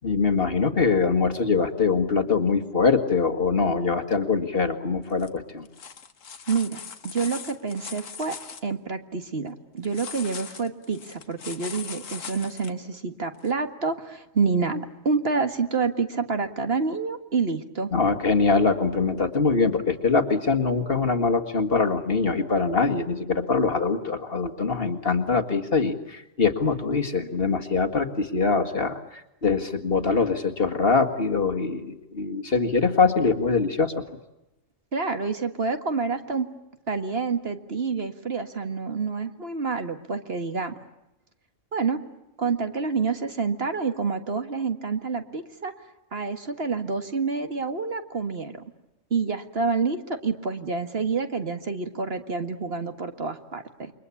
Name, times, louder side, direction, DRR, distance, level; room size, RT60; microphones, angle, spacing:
voice 1, 0.0-5.7 17.9-33.9, left 4 dB, 50° left, 6 dB, 2.1 m, -23 dB
sound 1, 5.1-5.3 5.7-8.6 9.8-12.7 13.5-13.6, left 6 dB, 85° left, 1.7 m, -40 dB
voice 2, 6.5-8.3 8.6-17.9 34.9-36.5 36.9-40.7 41.7-42.0 42.4-45.7 46.1-48.6 49.1-53.9, right 4 dB, 50° right, 7 dB, 2.0 m, -28 dB
28.5 x 24.0 x 8.5 m, 0.90 s
omnidirectional pair, 1.3 m